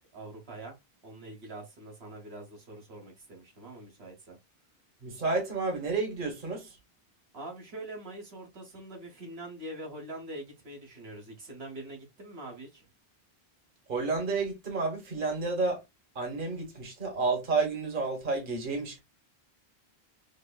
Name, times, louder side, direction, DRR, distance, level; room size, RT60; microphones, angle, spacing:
voice 1, 0.1-0.8 1.0-4.4 7.3-12.9, right 1 dB, 75° right, 1.3 m, -44 dB
voice 2, 5.0-6.8 13.9-15.8 16.1-19.0, right 3 dB, 55° right, 1.3 m, -30 dB
5.3 x 2.0 x 2.2 m
omnidirectional pair, 1.1 m